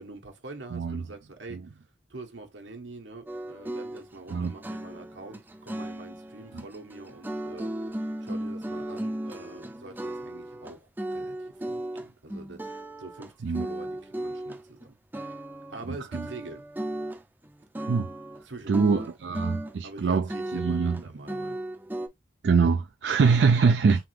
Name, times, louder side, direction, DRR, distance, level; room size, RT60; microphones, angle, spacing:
voice 1, 0.0-1.8 2.1-15.4 15.7-16.7 18.4-18.9 19.8-21.6 23.4-23.6, right 2 dB, 85° right, 1.3 m, -45 dB
voice 2, 0.7-1.0 1.5-1.6 4.3-4.5 13.4-13.7 16.1-16.2 17.9-18.1 18.7-20.3 20.5-21.0 22.4-24.1, right 5 dB, 65° right, 0.4 m, -23 dB
sound 1, 3.3-14.9 15.1-15.9 16.1-18.4 18.7-20.0 20.3-22.1, right 1 dB, 10° right, 0.5 m, -36 dB
3.4 x 3.4 x 3.2 m
head